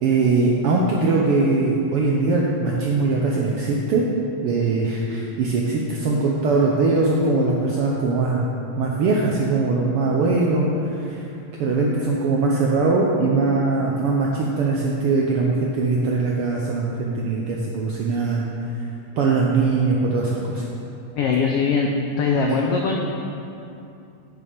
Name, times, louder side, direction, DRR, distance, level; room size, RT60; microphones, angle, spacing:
voice 1, 0.0-4.1 4.4-8.5 8.8-10.7 11.0-11.2 11.6-18.4 19.2-20.6, right 3 dB, 75° right, -2 dB, 1.3 m, -21 dB
voice 2, 21.1-21.9 22.2-23.0, left 5 dB, 85° left, 1 dB, 1.3 m, -21 dB
9.0 x 6.9 x 5.1 m, 2.7 s
omnidirectional pair, 3.4 m